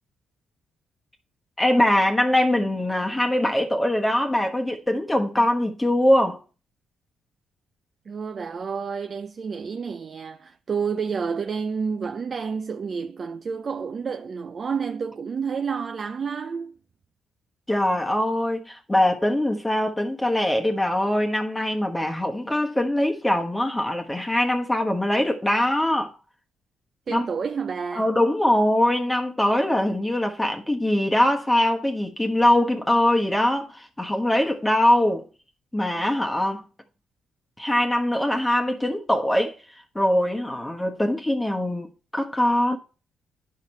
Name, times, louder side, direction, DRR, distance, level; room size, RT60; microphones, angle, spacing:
voice 1, 1.6-6.4 17.7-26.1 27.1-27.3 27.9-35.3 35.7-36.6 37.6-42.8, left 1 dB, 10° left, 1.2 m, -22 dB
voice 2, 8.1-16.7 27.1-28.1, right 6 dB, 45° right, 0.4 m, -30 dB
9.2 x 5.8 x 4.3 m
cardioid pair, 90°, 0 cm